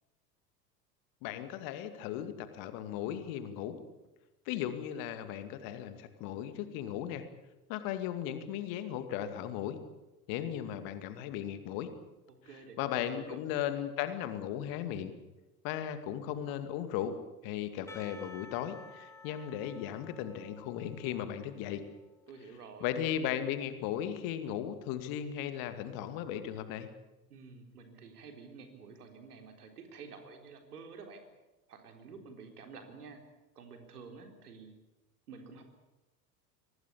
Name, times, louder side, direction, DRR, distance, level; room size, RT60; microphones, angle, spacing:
voice 1, 1.2-3.8 4.5-7.2 7.7-9.8 10.3-11.9 12.8-15.1 15.6-17.2 17.4-21.8 22.8-26.9, left 10 dB, 45° left, 9 dB, 2.4 m, -36 dB
voice 2, 12.3-13.4 22.3-23.0 27.3-31.3 31.7-33.2 33.6-34.7 35.3-35.6, right 5 dB, 70° right, 5 dB, 4.1 m, -50 dB
Percussion / Church bell, 17.9-22.4, left 3 dB, 5° left, 2.7 m, -54 dB
24.5 x 19.0 x 8.7 m, 1.0 s
figure-of-eight pair, 75°, 48 cm